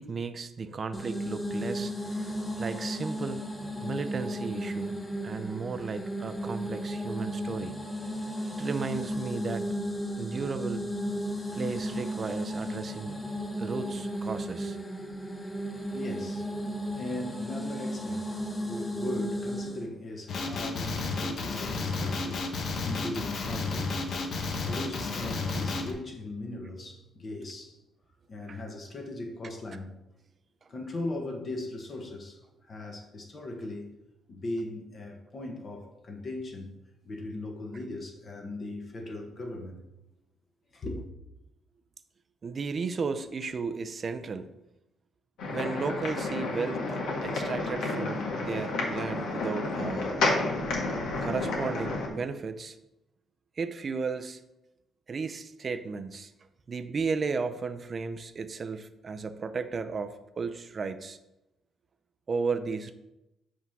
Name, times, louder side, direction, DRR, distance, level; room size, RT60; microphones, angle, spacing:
voice 1, 0.0-3.4 3.8-4.9 5.2-7.8 8.6-9.6 10.2-10.8 11.5-13.3 13.6-14.8 28.5-28.6 42.4-44.5 45.5-50.2 51.2-52.8 53.6-54.4 55.1-56.3 56.7-61.2 62.3-62.9, right 4 dB, 35° right, 0.5 m, -34 dB
sound 1, 0.9-19.8, equal, 10° left, 0.9 m, -34 dB
voice 2, 15.9-27.8 28.3-30.0 30.7-34.0 34.3-36.8 37.0-39.8 40.7-41.0, left 2 dB, 40° left, 1.2 m, -39 dB
Male speech man speaking, 20.3-25.9, left 3 dB, 55° left, 1.0 m, -32 dB
sound 2, 45.4-52.1, left 2 dB, 85° left, 1.7 m, -31 dB
8.1 x 3.7 x 5.9 m
cardioid pair, 135°, 0 cm